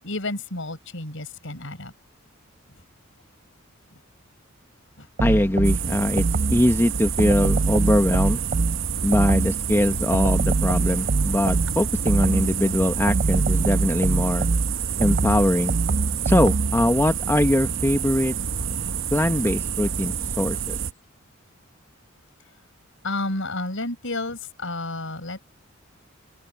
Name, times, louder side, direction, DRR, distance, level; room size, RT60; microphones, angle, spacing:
voice 1, 0.0-1.9 3.9-4.0 5.0-5.1 23.0-25.4, left 2 dB, 65° left, 8.0 m, -31 dB
voice 2, 5.2-6.2 6.5-8.4 9.0-14.5 15.0-15.8 16.2-18.3 19.1-20.8, left 1 dB, 10° left, 1.0 m, -22 dB
sound 1, 5.2-6.7 7.2-9.7 10.1-12.6 13.1-16.9, right 3 dB, 45° right, 0.5 m, -24 dB
sound 2, 5.6-20.9, right 6 dB, 65° right, 1.0 m, -28 dB
head